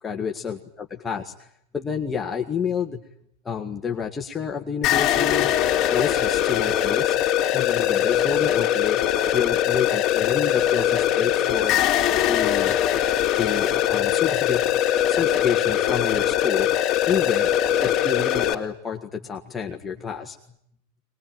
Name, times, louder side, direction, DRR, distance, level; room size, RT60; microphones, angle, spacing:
voice 1, 0.0-1.3 1.7-3.0 3.5-5.5 5.9-7.2 7.5-9.0 9.3-11.8 12.3-12.8 13.4-14.6 15.1-16.7 17.0-17.5 17.8-20.4, left 7 dB, 15° left, 2 dB, 1.8 m, -29 dB
sound 1, 4.8-18.5, left 11 dB, 35° left, 3.1 m, -22 dB
23.0 x 21.0 x 9.4 m, 0.71 s
supercardioid pair, 140°, 0 cm